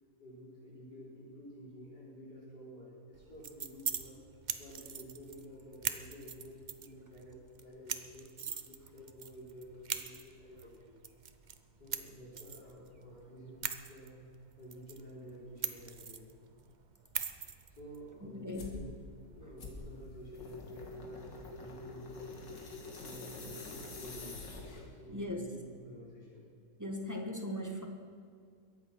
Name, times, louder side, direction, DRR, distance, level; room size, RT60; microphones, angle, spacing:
voice 1, 0.2-4.2 4.6-10.9 11.8-14.2 14.6-16.2 17.7-18.9 19.2-22.6 23.0-24.4 24.9-26.5, equal, 70° left, -6 dB, 5.7 m, -51 dB
sound 1, 3.1-20.0, right 7 dB, 80° right, 0.4 m, -44 dB
voice 2, 18.4-18.7 25.1-25.5 26.8-27.9, left 1 dB, 10° right, 3 dB, 1.2 m, -38 dB
sound 2, 18.5-18.8 19.6-25.0, left 3 dB, 90° left, 2.6 m, -46 dB
22.0 x 8.9 x 6.1 m, 2.3 s
omnidirectional pair, 1.8 m